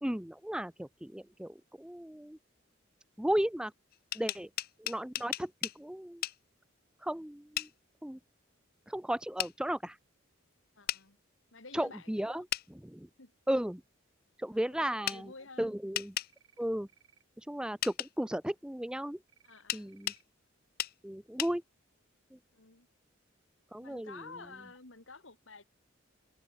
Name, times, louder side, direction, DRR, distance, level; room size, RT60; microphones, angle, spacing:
voice 1, 0.0-2.4 3.2-3.7 4.1-4.5 4.8-6.2 7.0-7.7 8.0-8.2 8.9-10.0 11.7-12.5 12.8-13.1 13.5-13.8 14.4-15.3 15.6-16.1 16.6-16.9 17.4-19.2 19.7-20.1 21.0-21.6 22.3-22.4 23.7-24.2, right 1 dB, 5° right, 0.5 m, -35 dB
sound 1, 3.9-5.8 6.2-6.4 7.6-7.7 9.4-9.5 10.9-11.0 12.5-12.7 15.1-15.2 15.9-16.3 17.8-18.1 19.7-20.2 20.8-20.9 21.4-21.5, left 13 dB, 50° left, 0.5 m, -35 dB
voice 2, 10.7-11.2 11.5-12.4 13.2-13.3 14.5-15.7 19.4-19.9 22.5-22.9 23.8-25.6, left 3 dB, 70° left, 3.1 m, -51 dB
sound 2, 16.3-16.6 16.9-17.2 19.3-19.6 19.9-20.2, right 9 dB, 80° right, 4.6 m, -65 dB
head